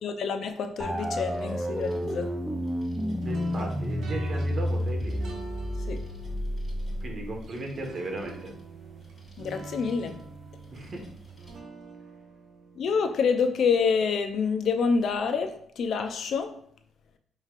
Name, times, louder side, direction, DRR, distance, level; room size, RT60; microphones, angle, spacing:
voice 1, 0.0-2.3 5.9-6.0 9.4-10.2 12.8-16.6, left 5 dB, 65° left, 0.5 m, -27 dB
sound 1, 0.8-11.6, right 5 dB, 15° left, 1.5 m, -49 dB
sound 2, 0.8-7.4, equal, 10° right, 0.4 m, -31 dB
voice 2, 3.2-5.2 7.0-8.5 10.7-11.0, right 2 dB, 45° right, 1.3 m, -36 dB
sound 3, 3.2-14.3, right 3 dB, 70° right, 1.2 m, -45 dB
5.4 x 3.1 x 2.5 m
cardioid pair, 90°, 0 cm